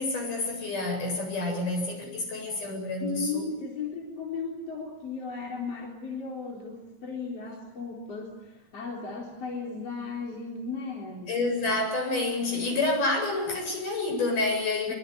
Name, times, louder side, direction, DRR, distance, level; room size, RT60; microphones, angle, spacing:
voice 1, 0.0-3.5 11.3-14.9, left 2 dB, 65° left, 2 dB, 9.6 m, -28 dB
voice 2, 3.0-11.4 14.9-15.0, left 4 dB, 45° left, -1 dB, 4.7 m, -36 dB
25.0 x 24.0 x 9.8 m, 1.1 s
omnidirectional pair, 4.0 m